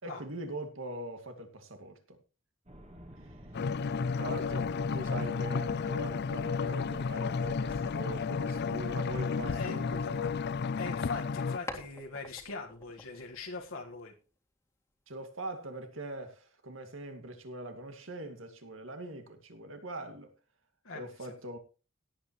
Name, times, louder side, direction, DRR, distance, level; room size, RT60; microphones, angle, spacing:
voice 1, 0.0-2.2 3.2-3.4 3.8-10.4 15.1-20.3 20.9-21.6, right 1 dB, 70° right, 2.3 m, -42 dB
sound 1, 2.7-9.0, equal, 35° right, 2.3 m, -50 dB
sound 2, 3.5-11.6, left 5 dB, 55° left, 0.4 m, -32 dB
voice 2, 9.5-9.8 10.8-14.1 20.8-21.1, left 3 dB, 85° left, 1.7 m, -41 dB
sound 3, 11.7-14.3, left 2 dB, 15° left, 2.1 m, -48 dB
17.0 x 8.9 x 3.1 m
head